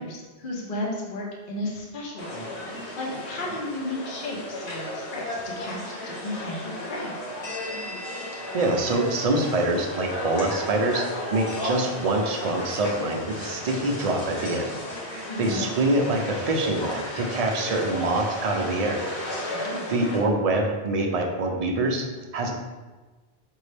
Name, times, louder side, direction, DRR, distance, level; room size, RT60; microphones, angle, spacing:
voice 1, 0.0-2.6 3.0-7.1 15.3-15.7 19.5-19.9, left 1 dB, 55° left, -2 dB, 1.0 m, -34 dB
sound 1, 2.2-20.2, left 1 dB, 85° left, 1.4 m, -34 dB
voice 2, 8.5-11.0 11.3-14.7 15.0-19.1 19.5-22.1 22.3-22.5, right 2 dB, 45° right, 2 dB, 0.5 m, -25 dB
5.2 x 2.7 x 3.3 m, 1.3 s
omnidirectional pair, 1.1 m